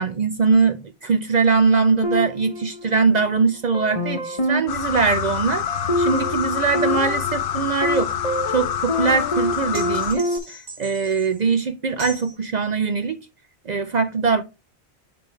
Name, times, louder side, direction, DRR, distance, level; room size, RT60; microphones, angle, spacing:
voice 1, 0.0-5.7 6.0-8.1 8.5-13.2 13.7-14.4, right 5 dB, 55° right, 0.5 m, -21 dB
sound 1, 2.0-3.3 3.7-10.4, left 1 dB, 35° left, 1.0 m, -27 dB
sound 2, 4.7-10.1, left 9 dB, 60° left, 0.8 m, -27 dB
sound 3, 9.7-11.4 12.0-12.3, right 1 dB, 90° right, 2.4 m, -38 dB
6.8 x 5.2 x 3.0 m
omnidirectional pair, 1.1 m